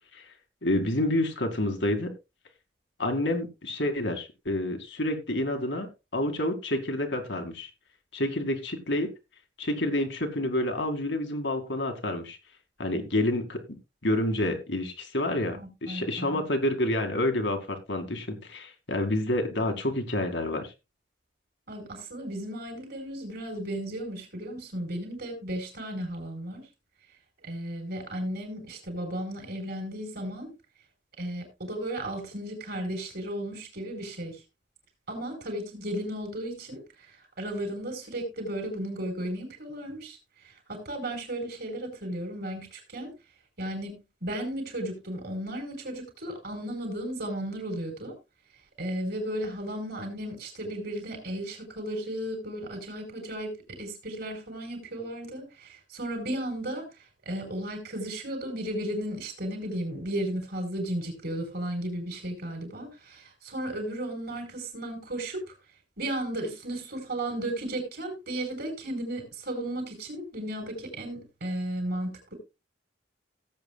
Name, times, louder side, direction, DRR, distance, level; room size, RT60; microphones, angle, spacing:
voice 1, 0.6-2.1 3.0-7.7 8.1-9.1 9.6-12.4 12.8-13.6 14.0-20.7, left 1 dB, 65° left, 2.3 m, -28 dB
voice 2, 15.5-16.4 21.7-26.7 27.4-30.5 31.2-34.4 35.1-40.2 40.4-43.1 43.6-43.9 44.2-48.1 48.8-56.9 57.2-65.5 66.0-72.3, right 1 dB, 55° right, 4.8 m, -34 dB
17.5 x 8.3 x 2.3 m
head